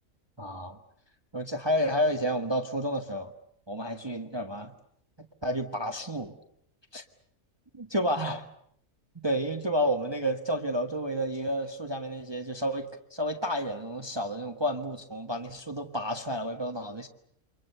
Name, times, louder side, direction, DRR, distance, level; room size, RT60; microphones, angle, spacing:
voice 1, 0.4-0.8 1.3-3.3 3.7-4.7 5.2-6.3 6.9-7.0 7.7-8.5 9.2-17.1, equal, 20° right, 5 dB, 1.4 m, -30 dB
28.5 x 25.0 x 6.8 m, 0.68 s
omnidirectional pair, 1.5 m